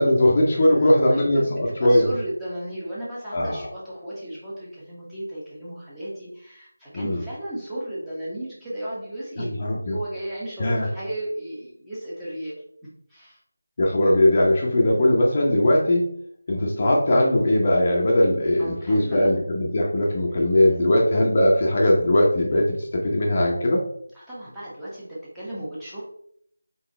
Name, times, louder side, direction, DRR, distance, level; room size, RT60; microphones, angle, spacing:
voice 1, 0.0-2.1 3.3-3.7 6.9-7.2 9.4-10.0 10.6-10.9 13.8-16.0 16.5-23.8, left 1 dB, 35° left, -1 dB, 0.7 m, -20 dB
voice 2, 0.7-12.5 13.1-13.4 18.6-19.3 20.7-20.8 24.1-26.0, right 1 dB, 5° right, -11 dB, 1.0 m, -35 dB
4.0 x 3.9 x 3.2 m, 0.68 s
figure-of-eight pair, 170°, 0 cm